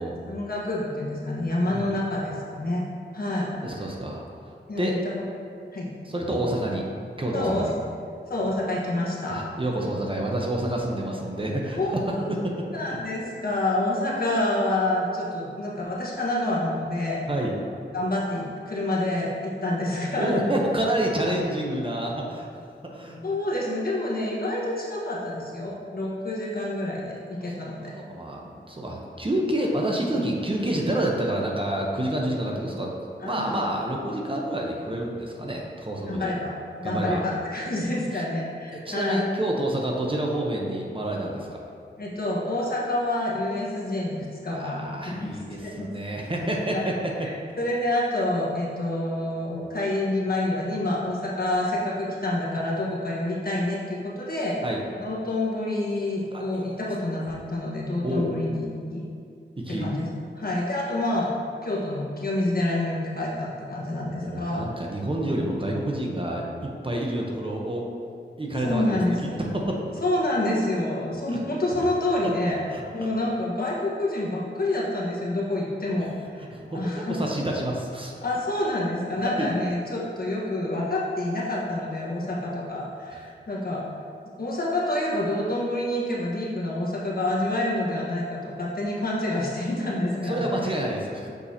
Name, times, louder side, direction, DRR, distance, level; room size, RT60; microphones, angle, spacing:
voice 1, 0.3-2.8 3.1-3.5 4.7-5.3 5.7-5.9 7.3-7.7 8.3-9.4 11.7-12.3 12.7-17.2 17.9-20.3 23.2-27.9 33.2-33.7 36.1-36.5 36.8-39.2 42.0-45.9 46.2-46.3 46.7-46.8 47.2-54.6 55.0-59.0 59.7-60.1 60.4-61.3 61.6-64.6 68.6-69.4 70.0-72.6 72.9-76.3 76.7-77.2 78.2-83.8 84.4-90.5, left 1 dB, 50° left, -5 dB, 1.4 m, -28 dB
voice 2, 3.6-4.2 4.8-5.0 6.0-6.9 7.2-7.7 9.3-12.7 17.3-17.5 20.2-22.5 22.9-23.2 27.4-27.5 27.8-33.0 33.2-36.3 36.8-37.2 38.1-38.2 38.7-41.6 44.5-46.9 54.6-54.8 56.3-56.6 58.0-58.3 59.6-59.9 64.0-67.9 68.4-69.0 69.4-69.8 71.3-71.4 72.7-73.1 76.5-78.1 79.4-79.5 90.2-91.3, right 1 dB, 30° right, -1 dB, 0.9 m, -28 dB
6.3 x 5.6 x 2.8 m, 2.3 s
cardioid pair, 55°, 19 cm